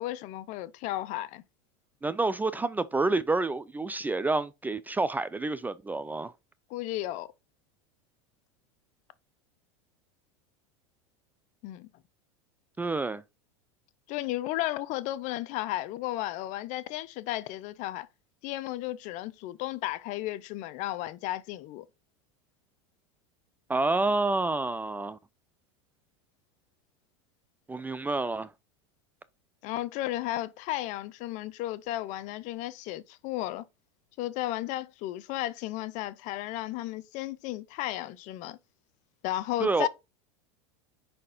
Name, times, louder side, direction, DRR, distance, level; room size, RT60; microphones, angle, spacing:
voice 1, 0.0-1.4 6.7-7.3 11.6-11.9 14.1-18.1 18.4-21.8 29.6-33.6 34.2-38.6 39.2-39.9, left 15 dB, 50° left, 0.7 m, -34 dB
voice 2, 2.0-6.3 12.8-13.2 23.7-25.2 27.7-28.5 39.6-39.9, right 3 dB, 10° right, 0.4 m, -28 dB
5.3 x 4.3 x 5.0 m
hypercardioid pair, 100°, 16 cm